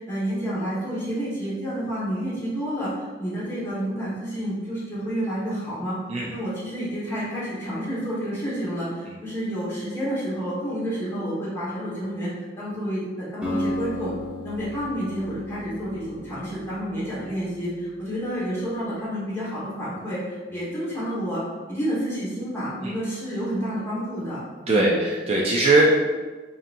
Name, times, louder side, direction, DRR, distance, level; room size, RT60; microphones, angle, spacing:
voice 1, 0.0-2.9 3.2-6.0 6.3-14.1 14.4-21.4 21.7-24.9, equal, 15° left, -10 dB, 1.4 m, -29 dB
Acoustic guitar, 13.4-17.5, left 1 dB, 5° right, 0.9 m, -34 dB
voice 2, 24.7-25.9, right 2 dB, 35° right, -3 dB, 0.4 m, -20 dB
5.2 x 2.8 x 2.6 m, 1.3 s
head